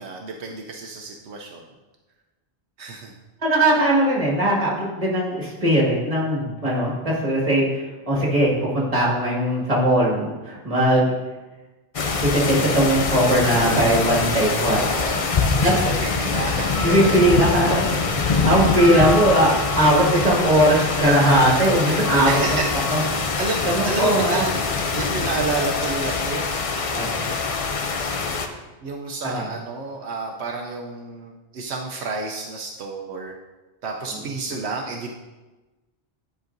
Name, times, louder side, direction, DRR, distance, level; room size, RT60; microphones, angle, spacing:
voice 1, 0.0-1.6 2.8-3.1 13.5-14.0 14.7-17.3 22.3-22.7 23.3-24.6 24.9-26.5 28.8-33.3 33.8-35.2, right 3 dB, 80° right, 1 dB, 0.9 m, -30 dB
voice 2, 3.4-7.8 8.1-11.1 12.3-14.9 15.6-15.7 16.8-22.6 22.9-23.0 23.7-24.4 26.9-27.3 29.2-29.5, right 1 dB, 35° right, -5 dB, 1.9 m, -19 dB
sound 1, 11.9-28.5, left 4 dB, 45° left, 0.5 m, -24 dB
10.5 x 5.4 x 2.6 m, 1.2 s
omnidirectional pair, 1.1 m